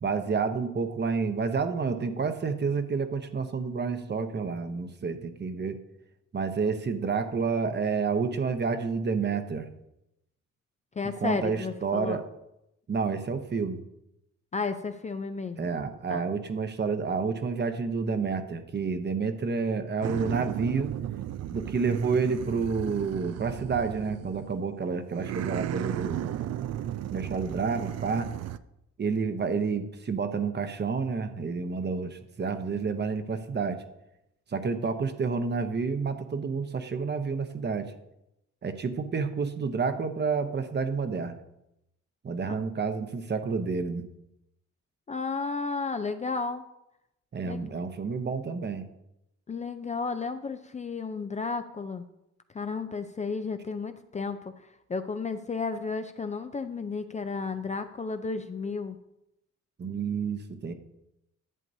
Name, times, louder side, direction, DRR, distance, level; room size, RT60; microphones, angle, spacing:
voice 1, 0.0-5.8 6.3-9.7 11.2-12.2 12.9-13.8 15.6-20.9 21.5-26.3 27.1-28.3 29.0-33.8 34.5-37.9 38.6-41.4 42.2-44.0 47.3-48.8 59.8-60.7, right 5 dB, 35° right, 8 dB, 0.9 m, -29 dB
voice 2, 11.0-12.2 14.5-15.7 16.1-16.2 42.5-42.6 45.1-46.6 47.4-47.8 49.5-52.0 52.5-54.4 54.9-59.0, left 4 dB, 25° left, 8 dB, 0.4 m, -33 dB
sound 1, 20.0-24.7 25.1-28.6, right 12 dB, 60° right, 0.4 m, -35 dB
11.0 x 8.2 x 2.7 m, 0.86 s
cardioid pair, 90°, 30 cm